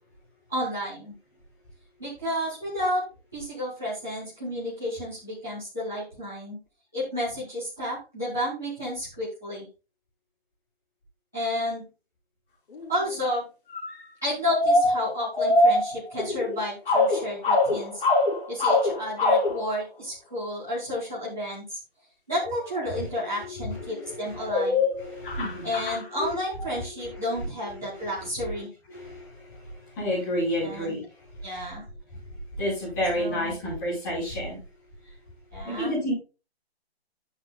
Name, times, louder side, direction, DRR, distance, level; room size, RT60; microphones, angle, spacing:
voice 1, 0.5-1.1 2.0-3.0 3.3-6.6 6.9-9.6 11.3-11.9 12.9-13.4 14.2-18.0 18.5-21.8 22.3-24.8 25.6-28.7 30.6-30.9 31.4-31.8 33.1-33.5 35.5-36.1, left 1 dB, ahead, -13 dB, 0.6 m, -31 dB
sound 1, 12.8-12.9 13.8-14.0 14.5-16.6 16.9-19.6 22.8-22.9 23.8-24.1 24.5-26.7, left 2 dB, 55° left, 4.0 m, -23 dB
voice 2, 23.3-24.7 24.9-26.0 26.9-31.4 32.5-34.6 35.6-36.1, equal, 20° left, -5 dB, 4.8 m, -32 dB
11.5 x 7.2 x 2.3 m, 0.30 s
hypercardioid pair, 175°, 32 cm